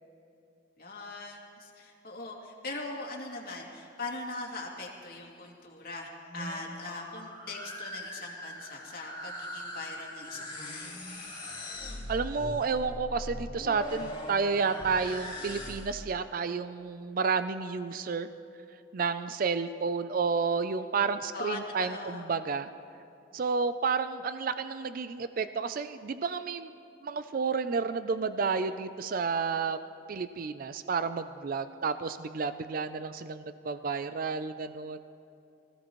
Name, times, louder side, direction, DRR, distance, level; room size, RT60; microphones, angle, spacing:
voice 1, 0.8-11.0 21.3-22.3, left 3 dB, 55° left, -2 dB, 2.4 m, -41 dB
sound 1, 6.1-16.1, left 1 dB, 30° left, 3.7 m, -41 dB
voice 2, 12.1-18.3 18.9-22.7 23.3-26.7 27.0-29.8 30.1-35.0, right 5 dB, 50° right, 11 dB, 0.4 m, -31 dB
24.0 x 15.5 x 3.1 m, 2.7 s
head